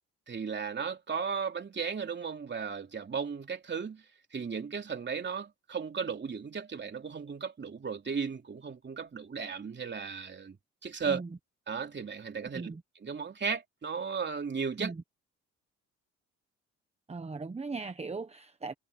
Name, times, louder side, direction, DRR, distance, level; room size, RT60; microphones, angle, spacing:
voice 1, 0.3-4.0 4.3-10.6 10.8-11.2 11.7-12.7 13.0-14.9, right 6 dB, 35° right, 3.3 m, -35 dB
voice 2, 11.0-11.4 12.5-12.8 14.8-15.0 17.1-18.7, right 4 dB, 20° right, 1.1 m, -38 dB
cardioid pair, 90°, 30 cm